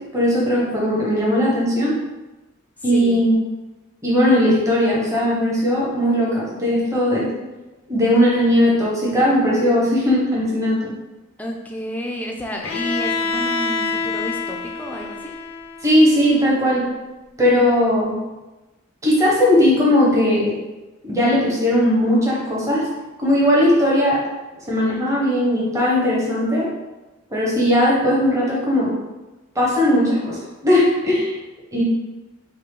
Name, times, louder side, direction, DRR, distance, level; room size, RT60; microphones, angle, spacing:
voice 1, 0.1-2.0 2.8-3.3 4.0-7.3 7.9-10.9 15.8-16.8 17.4-18.2 19.0-20.5 21.0-22.8 23.2-24.2 24.7-26.7 27.3-28.9 29.5-31.3 31.7-31.8, left 1 dB, 15° right, -5 dB, 0.9 m, -18 dB
voice 2, 11.4-15.4, equal, 5° left, 0 dB, 0.4 m, -31 dB
Bowed string instrument, 12.6-16.5, left 4 dB, 80° left, 0.6 m, -27 dB
5.4 x 2.2 x 3.7 m, 1.1 s
head